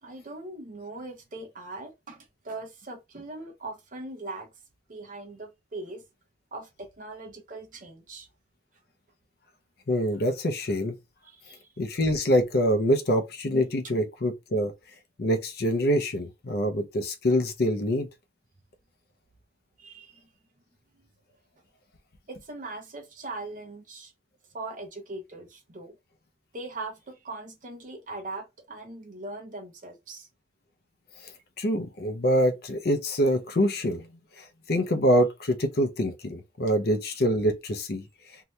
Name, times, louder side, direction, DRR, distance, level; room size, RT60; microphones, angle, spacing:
voice 1, 0.0-4.5 4.9-6.0 6.5-8.3 11.2-11.7 19.8-20.3 20.9-21.1 22.3-24.1 24.5-26.0 26.5-30.3, right 2 dB, 40° right, 0.7 m, -40 dB
voice 2, 9.9-10.9 11.8-14.7 15.2-18.1 31.6-34.1 34.4-38.0, equal, 55° left, 0.5 m, -25 dB
2.7 x 2.2 x 3.1 m
head